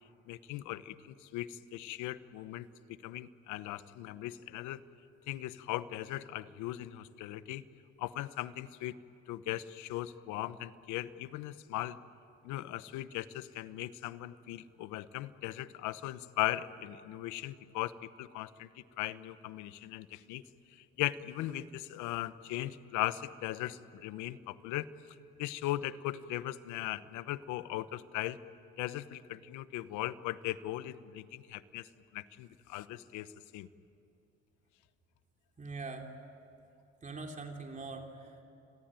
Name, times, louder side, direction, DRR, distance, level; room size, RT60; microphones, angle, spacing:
voice 1, 0.3-2.7 3.0-4.8 5.3-7.6 8.0-8.9 9.3-12.0 12.4-20.4 20.7-24.9 25.4-28.4 28.8-31.9 32.1-33.7, left 15 dB, 85° left, 14 dB, 1.1 m, -38 dB
voice 2, 35.6-36.1 37.0-38.4, right 3 dB, 25° right, 2 dB, 3.4 m, -43 dB
30.0 x 21.5 x 9.2 m, 2.8 s
cardioid pair, 115°, 29 cm